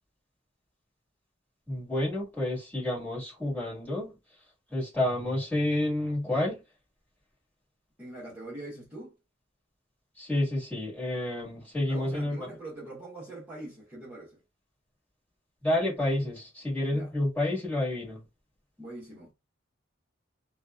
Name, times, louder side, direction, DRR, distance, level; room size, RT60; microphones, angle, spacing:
voice 1, 1.7-4.1 4.7-6.6 10.2-12.5 15.6-18.2, left 1 dB, 10° left, 1.4 m, -29 dB
voice 2, 8.0-9.1 11.9-14.4 16.9-17.1 18.8-19.3, right 2 dB, 10° right, 0.8 m, -43 dB
2.8 x 2.2 x 2.2 m
head